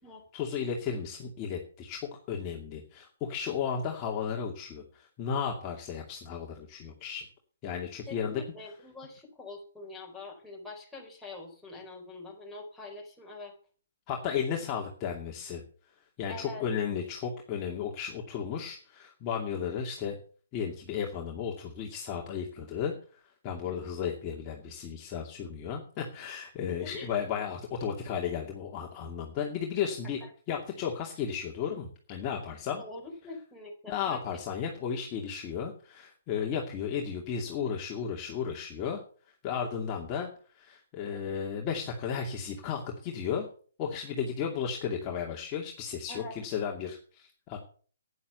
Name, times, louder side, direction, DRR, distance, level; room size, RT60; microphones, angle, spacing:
voice 1, 0.3-2.0 2.3-7.3 7.6-8.4 14.1-15.6 16.2-20.2 20.5-30.2 30.5-32.8 33.9-39.0 39.4-40.3 40.5-43.5 43.8-47.6, left 7 dB, 25° left, -1 dB, 2.4 m, -34 dB
voice 2, 8.1-13.6 16.3-16.6 23.6-23.9 26.7-27.1 32.8-34.2 46.1-46.4, left 3 dB, 5° left, -3 dB, 4.2 m, -44 dB
11.0 x 9.9 x 6.9 m, 0.43 s
hypercardioid pair, 145°, 0 cm